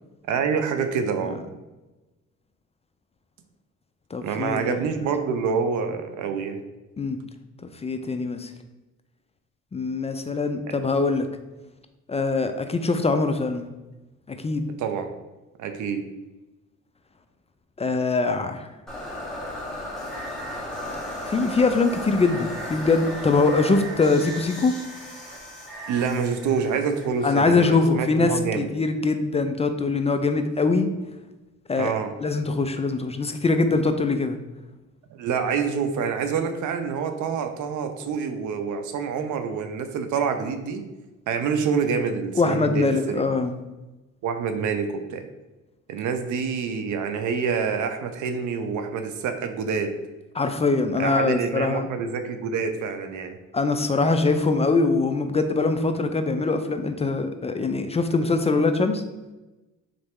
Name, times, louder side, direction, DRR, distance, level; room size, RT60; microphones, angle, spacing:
voice 1, 0.3-1.4 4.2-6.6 14.8-15.1 15.6-16.0 25.9-28.7 31.8-32.1 35.1-40.8 41.3-43.3 44.2-45.2 45.9-49.9 51.0-53.4, right 6 dB, 75° right, 7 dB, 0.6 m, -27 dB
voice 2, 4.1-4.8 7.0-7.2 7.8-8.5 9.7-11.3 12.1-13.7 14.3-14.7 17.8-18.7 21.3-24.7 27.2-30.9 31.7-31.9 32.2-34.4 42.3-43.5 50.3-51.9 53.5-59.0, left 3 dB, 20° left, 7 dB, 0.3 m, -23 dB
sound 1, 18.9-27.9, left 1 dB, ahead, 1.2 m, -35 dB
3.9 x 3.3 x 3.6 m, 1.1 s
cardioid pair, 90°, 30 cm